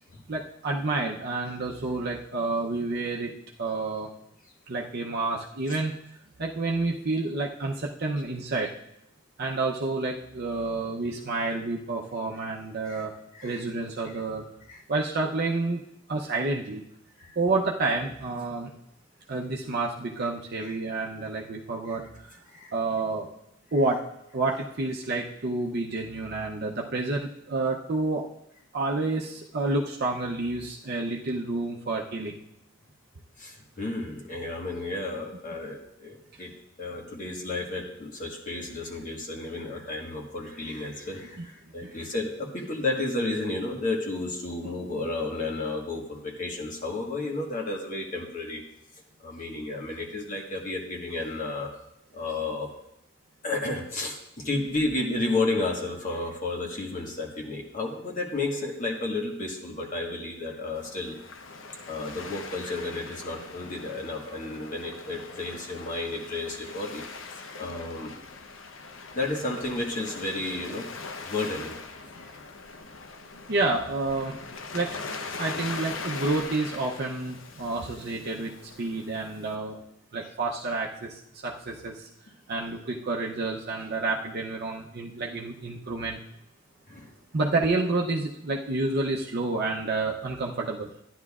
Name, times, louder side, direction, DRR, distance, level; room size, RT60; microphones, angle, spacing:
voice 1, 0.3-4.1 4.7-5.9 6.4-8.7 9.4-13.1 13.4-14.5 14.9-15.8 16.1-16.8 17.4-18.7 19.3-22.4 22.7-23.3 23.7-24.0 24.3-28.3 28.7-32.3 41.4-41.5 73.5-74.4 74.7-75.0 75.4-79.8 80.1-82.1 82.5-86.2 87.3-90.9, right 3 dB, 55° right, -1 dB, 0.7 m, -29 dB
voice 2, 13.3-13.6 14.1-14.2 14.7-14.8 17.2-17.4 20.6-20.7 21.9-22.0 22.5-22.7 33.4-36.5 36.8-48.6 49.2-51.7 52.1-52.7 53.4-61.2 61.8-67.1 67.6-68.1 69.1-70.9 71.2-71.8 72.2-72.3 86.9-87.1, left 2 dB, 45° left, 0 dB, 1.4 m, -32 dB
Waves surf, 60.7-79.5, left 4 dB, 85° left, 0.8 m, -41 dB
13.0 x 10.0 x 2.4 m, 0.80 s
head